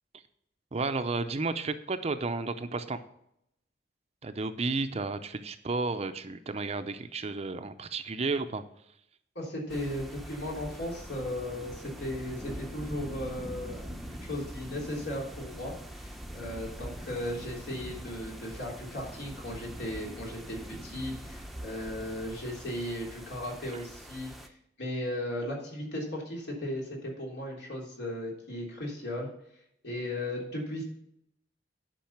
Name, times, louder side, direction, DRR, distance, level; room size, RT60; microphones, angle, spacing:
voice 1, 0.7-3.0 4.2-8.6, right 3 dB, 35° right, 10 dB, 0.6 m, -32 dB
voice 2, 9.4-13.8 14.1-24.5 24.8-29.3 29.8-30.8, left 1 dB, 65° left, -2 dB, 3.5 m, -36 dB
sound 1, 9.7-24.5, equal, ahead, 0.8 m, -43 dB
10.5 x 5.3 x 5.8 m, 0.75 s
head